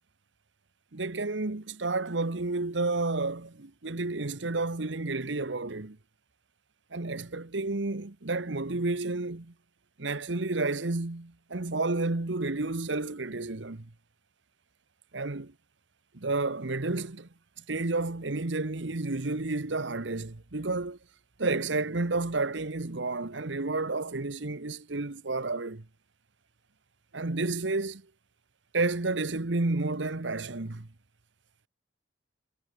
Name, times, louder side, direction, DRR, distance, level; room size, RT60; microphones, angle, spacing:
voice 1, 0.9-6.0 6.9-9.5 10.0-13.9 15.1-15.5 16.1-17.3 17.7-21.0 21.4-25.8 27.1-28.0 28.7-30.9, right 3 dB, 75° right, 1.2 m, -31 dB
head